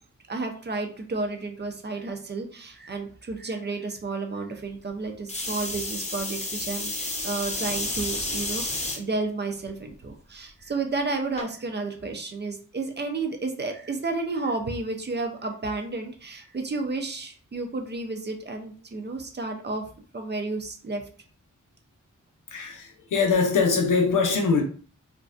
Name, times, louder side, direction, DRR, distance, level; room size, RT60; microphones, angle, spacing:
voice 1, 0.3-19.8 20.1-21.0, right 3 dB, 35° right, 4 dB, 0.4 m, -32 dB
sound 1, 5.3-9.0 9.6-10.1 11.4-11.5, left 2 dB, 20° left, 0.5 m, -31 dB
voice 2, 22.5-24.6, left 4 dB, 85° left, 3 dB, 0.6 m, -22 dB
2.5 x 2.1 x 2.4 m, 0.42 s
wide cardioid pair, 135°, 31 cm